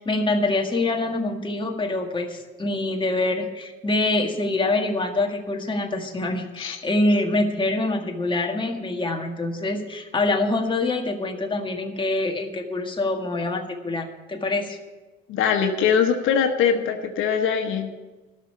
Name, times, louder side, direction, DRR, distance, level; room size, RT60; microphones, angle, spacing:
voice 1, 0.0-14.8, left 2 dB, 25° left, 2 dB, 1.7 m, -25 dB
voice 2, 15.3-17.9, left 7 dB, 90° left, 5 dB, 1.2 m, -22 dB
12.5 x 6.5 x 9.6 m, 1.2 s
cardioid pair, 90°, 20 cm